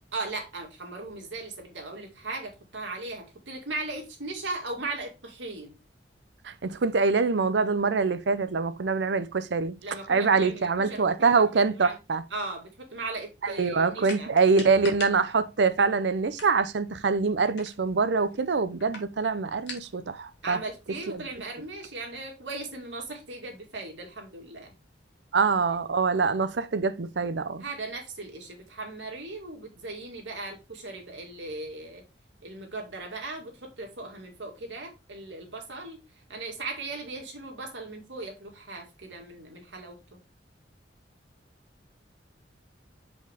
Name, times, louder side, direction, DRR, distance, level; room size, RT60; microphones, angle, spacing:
voice 1, 0.1-5.8 9.8-11.4 11.8-12.0 12.3-14.3 20.4-24.7 27.6-32.0 32.4-40.2, right 3 dB, 85° right, 2.3 m, -38 dB
voice 2, 6.4-9.7 10.1-12.2 13.4-20.6 21.1-21.2 25.3-27.6, right 4 dB, 70° right, 0.6 m, -24 dB
sound 1, 14.0-21.4, left 3 dB, 70° left, 2.2 m, -47 dB
6.0 x 5.0 x 3.5 m
head